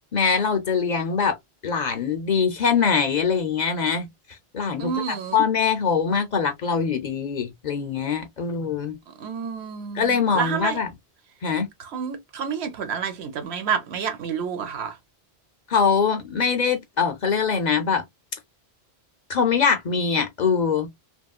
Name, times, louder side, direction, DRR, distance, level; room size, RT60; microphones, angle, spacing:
voice 1, 0.1-1.4 1.6-9.0 9.9-10.9 11.4-11.7 15.7-18.0 19.3-20.9, left 6 dB, 50° left, 0.6 m, -23 dB
voice 2, 4.8-5.4 9.2-10.8 11.8-15.0, right 7 dB, 80° right, 1.0 m, -29 dB
2.9 x 2.6 x 2.2 m
omnidirectional pair, 1.1 m